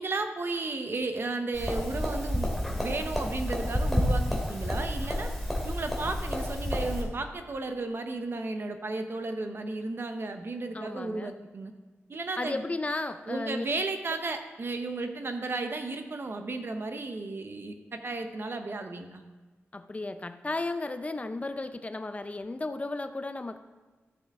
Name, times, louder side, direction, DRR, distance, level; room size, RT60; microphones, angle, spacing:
voice 1, 0.0-2.5 2.8-5.3 5.6-11.7 12.1-12.6 13.3-19.2, right 3 dB, 50° right, 6 dB, 0.9 m, -34 dB
sound 1, 1.5-7.0, equal, ahead, 2.3 m, -30 dB
voice 2, 10.7-11.3 12.4-13.7 19.7-23.6, left 2 dB, 30° left, 10 dB, 0.5 m, -34 dB
13.0 x 7.1 x 3.6 m, 1.3 s
wide cardioid pair, 85°, 5 cm